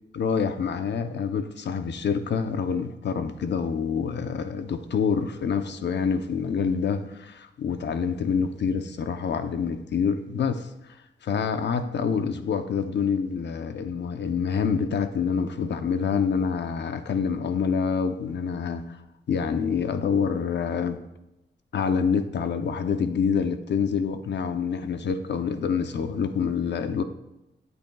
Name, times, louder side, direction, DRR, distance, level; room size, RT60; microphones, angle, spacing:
voice 1, 0.1-10.7 11.2-19.0 19.3-21.0 21.7-27.0, left 6 dB, 70° left, 0.7 m, -26 dB
12.0 x 8.1 x 2.3 m
wide cardioid pair, 150°, 19 cm